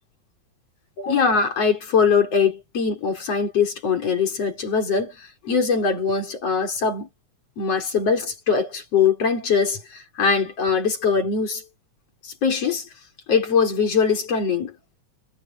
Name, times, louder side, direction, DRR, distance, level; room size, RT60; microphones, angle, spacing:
voice 1, 1.0-5.1 5.4-7.1 7.6-9.8 10.2-11.6 12.4-12.8 13.3-14.7, left 5 dB, 55° left, 4.8 m, -21 dB
omnidirectional pair, 3.3 m